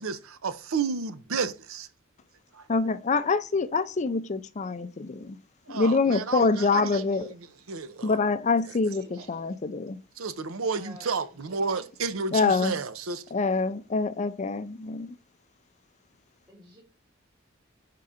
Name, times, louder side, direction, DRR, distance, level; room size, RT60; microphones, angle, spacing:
voice 1, 0.0-1.9 2.5-2.6 5.7-7.4 7.7-8.2 10.2-13.2, right 5 dB, 75° right, 0.7 m, -31 dB
voice 2, 2.7-5.4 5.7-7.3 8.0-10.0 12.3-12.8 13.3-15.2, left 4 dB, 35° left, 0.5 m, -25 dB
voice 3, 8.9-9.3 10.8-11.1 11.4-11.9 16.5-16.8, right 1 dB, 20° right, 2.2 m, -48 dB
4.8 x 3.7 x 5.7 m
head